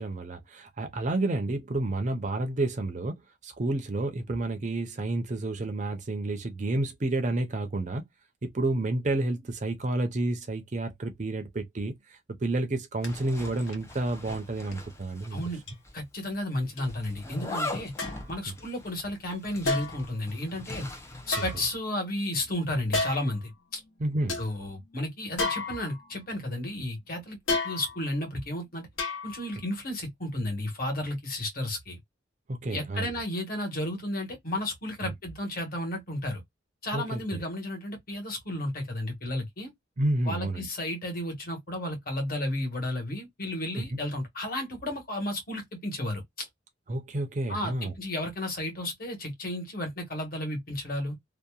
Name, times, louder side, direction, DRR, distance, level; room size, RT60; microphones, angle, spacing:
voice 1, 0.0-8.0 8.4-15.5 24.0-24.4 32.5-33.1 35.0-35.1 36.9-37.4 40.0-40.7 43.7-44.0 46.9-48.0, right 2 dB, 40° right, 0.5 m, -30 dB
sound 1, 13.0-13.1 13.7-13.9 14.7-14.8 15.7-15.8 16.8-16.9 18.0-18.3 19.6-20.1 21.2-22.1 22.9-23.4 23.9-24.0 24.3-24.5 25.4-26.2 27.5-28.1 29.0-29.6 29.9-30.0, left 3 dB, 80° left, 1.0 m, -32 dB
Zipper (clothing), 13.0-15.6 15.8-15.9 16.8-21.8, left 2 dB, 15° left, 0.5 m, -40 dB
voice 2, 15.9-17.9 18.3-20.9 21.3-23.5 24.4-27.4 27.6-28.9 29.2-32.0 32.7-36.4 36.8-39.7 40.3-46.2 47.5-51.1, left 1 dB, 45° left, 1.3 m, -33 dB
2.7 x 2.1 x 2.3 m
head